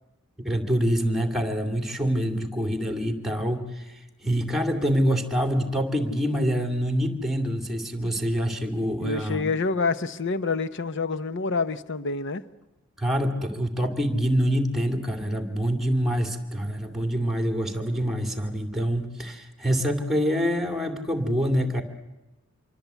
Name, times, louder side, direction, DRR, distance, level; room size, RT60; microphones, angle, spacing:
voice 1, 0.4-9.5 13.0-21.8, equal, ahead, 2.4 m, -26 dB
voice 2, 9.0-12.4, left 4 dB, 60° left, 0.9 m, -27 dB
25.5 x 23.5 x 8.2 m
head